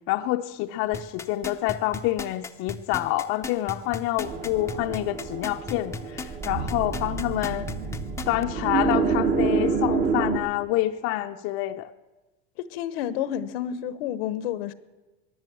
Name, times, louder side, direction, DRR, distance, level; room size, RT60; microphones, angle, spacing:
voice 1, 0.1-7.7 8.3-11.9, left 15 dB, 50° left, 0.6 m, -27 dB
sound 1, 0.9-8.4 8.9-9.0, left 4 dB, 10° left, 0.6 m, -35 dB
sound 2, 4.2-10.4, right 5 dB, 30° right, 1.2 m, -27 dB
voice 2, 12.6-14.7, left 10 dB, 85° left, 1.0 m, -30 dB
15.5 x 10.5 x 7.5 m
supercardioid pair, 145°, 29 cm